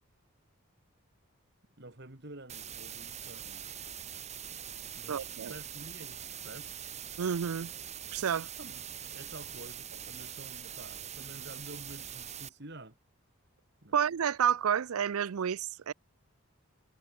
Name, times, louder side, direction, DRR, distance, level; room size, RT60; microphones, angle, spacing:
voice 1, 1.8-3.9 5.0-6.8 8.6-13.0 13.8-14.0, right 2 dB, 50° right, 2.2 m, -49 dB
sound 1, 2.5-12.5, right 9 dB, 30° right, 3.8 m, -43 dB
voice 2, 5.1-5.5 7.2-7.7 8.1-8.5 13.9-15.9, right 8 dB, 85° right, 0.5 m, -30 dB
head